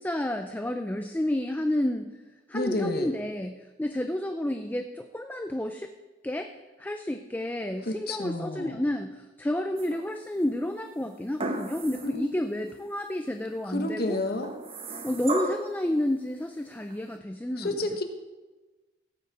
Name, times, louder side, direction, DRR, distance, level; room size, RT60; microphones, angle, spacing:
voice 1, 0.0-2.1 2.5-5.9 6.2-6.5 6.8-14.2 15.0-17.8, left 1 dB, 10° left, 6 dB, 0.4 m, -30 dB
voice 2, 2.5-3.1 7.8-8.8 12.0-12.2 13.7-14.5 17.6-18.0, left 1 dB, 55° left, 5 dB, 1.2 m, -30 dB
sound 1, 9.8-10.4 11.4-12.2 12.7-12.8 14.4-15.8 16.9-17.0, right 2 dB, 30° right, 0.9 m, -34 dB
16.5 x 8.4 x 4.8 m, 1.2 s
head